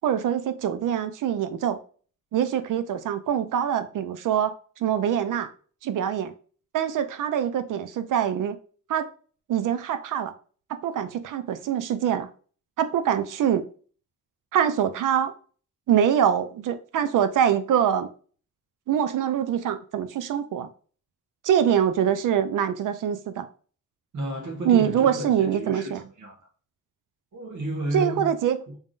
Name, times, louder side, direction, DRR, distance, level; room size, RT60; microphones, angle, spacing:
voice 1, 0.0-1.8 2.3-4.5 4.8-5.5 5.8-6.3 6.7-8.6 8.9-9.1 9.5-10.3 10.7-12.3 12.8-13.6 14.5-15.3 15.9-18.1 18.9-20.7 21.4-23.5 24.6-26.0 27.9-28.6, right 9 dB, 90° right, 0.6 m, -24 dB
voice 2, 24.1-25.9 26.2-26.4 27.3-28.3 28.7-28.8, right 1 dB, 70° right, 1.8 m, -32 dB
3.6 x 3.6 x 2.4 m
wide cardioid pair, 135°, 31 cm